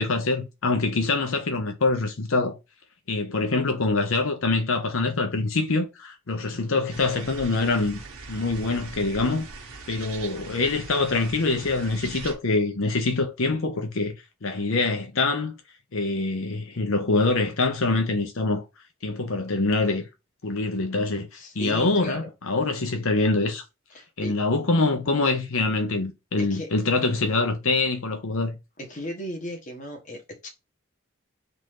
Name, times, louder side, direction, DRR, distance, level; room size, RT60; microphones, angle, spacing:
voice 1, 0.0-2.5 3.1-8.0 8.3-9.5 9.9-14.1 14.4-15.5 15.9-18.6 19.0-20.1 20.4-21.3 21.6-23.6 24.2-28.6, left 3 dB, 75° left, 0.8 m, -24 dB
sound 1, 6.9-12.4, right 4 dB, 85° right, 1.2 m, -41 dB
voice 2, 21.3-22.3 23.9-24.3 26.4-26.7 28.8-30.5, equal, 35° left, 1.1 m, -36 dB
3.9 x 2.6 x 4.8 m
head